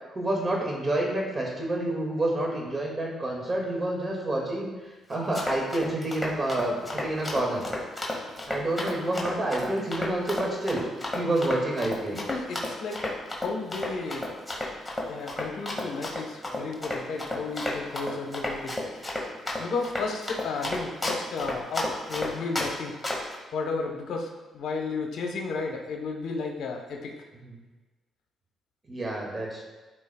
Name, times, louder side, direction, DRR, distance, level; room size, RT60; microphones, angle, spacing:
voice 1, 0.1-4.7 5.1-7.6 8.5-10.8 11.1-12.2 27.4-27.5 28.9-29.6, right 1 dB, 30° right, -1 dB, 2.0 m, -28 dB
Run, 5.1-22.7 23.0-23.4, left 1 dB, 10° left, 1.8 m, -32 dB
voice 2, 12.1-14.3 14.6-14.7 15.1-19.2 19.6-23.2 23.5-27.2, left 4 dB, 75° left, 2 dB, 1.0 m, -33 dB
12.5 x 4.8 x 2.3 m, 1.2 s
cardioid pair, 90°, 0 cm